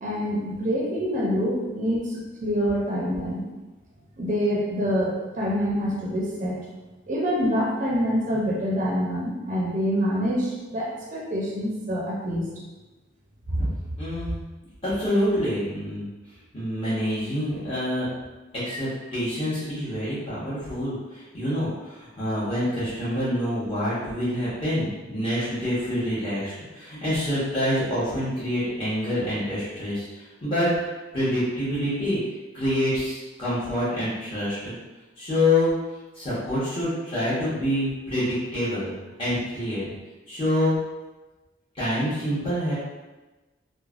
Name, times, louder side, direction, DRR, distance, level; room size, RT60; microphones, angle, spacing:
voice 1, 0.0-3.5 4.2-6.6 7.1-12.5, equal, 45° right, -4 dB, 0.5 m, -26 dB
voice 2, 14.0-14.3 14.8-16.1 16.5-18.1 18.5-30.7 31.1-32.2 32.5-34.7 35.2-35.7 36.1-38.9 39.2-39.9 40.3-40.8 41.8-42.7, left 1 dB, 30° left, -12 dB, 0.9 m, -26 dB
3.1 x 2.1 x 2.4 m, 1.2 s
head